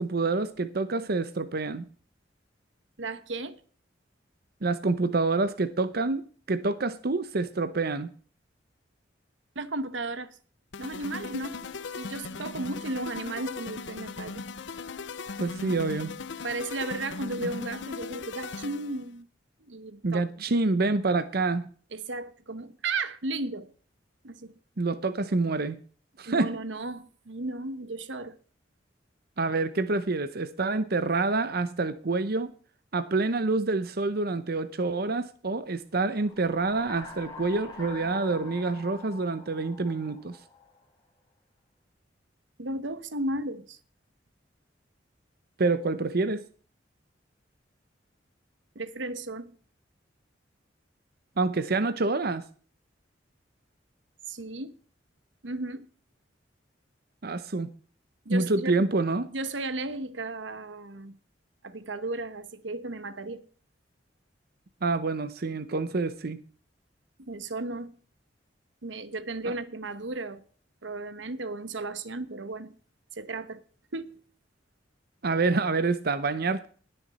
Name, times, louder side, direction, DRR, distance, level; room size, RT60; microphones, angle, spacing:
voice 1, 0.0-1.9 4.6-8.1 15.4-16.1 17.4-17.5 20.0-21.7 24.8-25.8 26.2-26.5 29.4-32.5 32.9-40.4 45.6-46.5 51.4-52.4 57.2-57.7 58.3-59.3 64.8-66.4 69.4-69.5 75.2-76.7, right 3 dB, 55° right, 0.8 m, -27 dB
voice 2, 3.0-3.6 9.5-10.4 10.8-11.6 12.0-14.4 16.4-19.3 19.6-20.3 21.9-23.7 24.2-24.6 26.3-28.4 42.6-43.8 48.7-49.5 54.3-54.7 55.4-55.9 58.2-58.9 59.3-61.1 61.6-63.4 67.2-67.9 68.8-70.4 70.8-72.7 73.1-73.6 73.9-74.2, right 2 dB, 90° right, 1.2 m, -35 dB
sound 1, 10.7-19.1, left 4 dB, 75° left, 0.7 m, -38 dB
sound 2, 36.1-40.8, left 3 dB, 20° left, 4.5 m, -45 dB
20.0 x 7.0 x 4.2 m
head